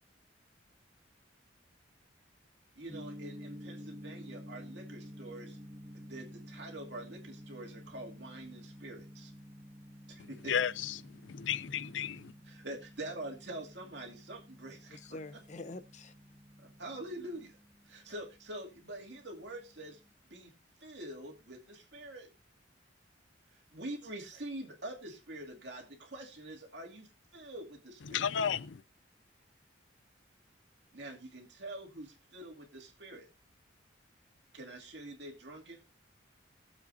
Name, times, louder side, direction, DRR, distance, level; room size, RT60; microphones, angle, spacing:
voice 1, 2.8-5.6 5.9-9.3 10.1-10.5 12.4-15.0 16.6-17.5 17.8-20.0 20.3-20.5 20.8-22.3 23.5-28.3 30.9-33.3 34.5-35.8, right 1 dB, 65° right, 2.5 m, -45 dB
Gong, 2.9-20.1, equal, 15° right, 1.6 m, -51 dB
voice 2, 10.5-11.0 11.3-12.3 28.1-28.8, left 8 dB, 80° left, 0.5 m, -33 dB
voice 3, 14.9-16.1, left 2 dB, 40° left, 0.7 m, -45 dB
20.5 x 7.5 x 2.7 m
head